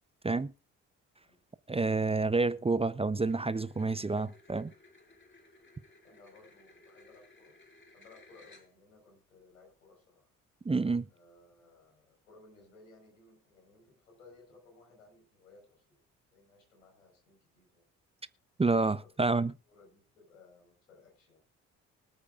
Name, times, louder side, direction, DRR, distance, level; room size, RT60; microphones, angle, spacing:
voice 1, 1.7-4.7 10.6-11.1 18.6-19.5, right 3 dB, 15° right, 0.7 m, -28 dB
sound 1, 3.2-9.0, left 2 dB, 30° left, 5.9 m, -60 dB
voice 2, 6.0-7.6 7.9-10.3 11.1-16.0 16.3-17.9 18.7-19.4 19.7-21.4, left 3 dB, 85° left, 4.9 m, -60 dB
24.5 x 8.7 x 2.5 m
hypercardioid pair, 45°, 39 cm